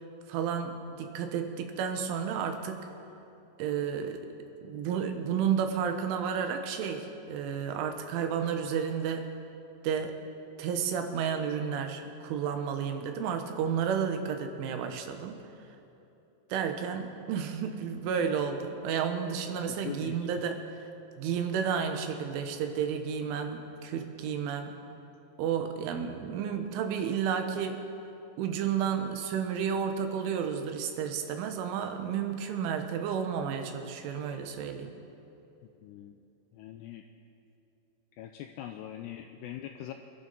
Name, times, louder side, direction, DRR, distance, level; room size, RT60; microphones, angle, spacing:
voice 1, 0.3-2.9 3.6-4.3 4.6-9.3 9.8-10.2 10.6-15.4 16.5-20.9 21.2-24.8 25.4-27.9 28.4-35.0, right 7 dB, 85° right, 6 dB, 3.6 m, -32 dB
voice 2, 19.7-20.2 35.8-36.2 36.5-37.0 38.1-39.9, left 12 dB, 90° left, 5 dB, 2.4 m, -42 dB
26.0 x 12.0 x 4.1 m, 2.9 s
omnidirectional pair, 5.5 m